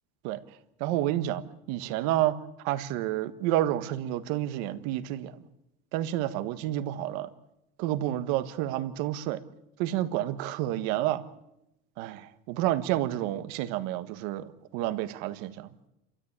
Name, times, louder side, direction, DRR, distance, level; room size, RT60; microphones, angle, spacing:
voice 1, 0.8-1.4 1.7-2.3 2.6-5.3 5.9-7.3 7.8-9.4 9.8-11.2 12.0-15.7, right 13 dB, 90° right, 10 dB, 1.7 m, -29 dB
29.0 x 13.5 x 8.9 m, 0.89 s
cardioid pair, 150°, 29 cm